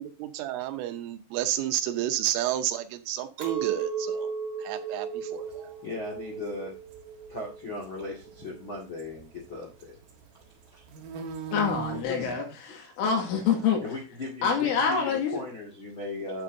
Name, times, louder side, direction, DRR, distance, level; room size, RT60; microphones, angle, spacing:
voice 1, 0.0-4.3 4.6-5.7, right 12 dB, 80° right, 8 dB, 3.4 m, -31 dB
Chink clink, 3.4-8.7, right 6 dB, 20° right, 3.5 m, -36 dB
sound 1, 5.3-12.0, right 7 dB, 60° right, 2.3 m, -42 dB
voice 2, 5.8-6.7 7.3-10.0 10.7-10.8 11.9-12.3 12.7-12.8 13.8-16.4, left 2 dB, 55° left, -2 dB, 1.4 m, -37 dB
voice 3, 11.5-13.8 14.4-15.4, left 6 dB, 75° left, 2 dB, 4.4 m, -26 dB
10.5 x 8.6 x 2.6 m, 0.31 s
omnidirectional pair, 5.8 m